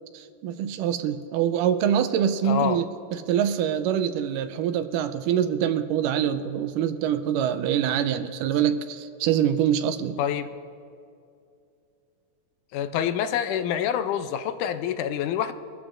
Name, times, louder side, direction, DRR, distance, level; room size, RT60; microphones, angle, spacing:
voice 1, 0.1-10.2, right 9 dB, 90° right, 10 dB, 2.2 m, -25 dB
voice 2, 2.4-2.8 10.2-10.5 12.7-15.5, left 9 dB, 80° left, 10 dB, 2.0 m, -26 dB
23.0 x 14.0 x 2.5 m, 2.4 s
omnidirectional pair, 3.7 m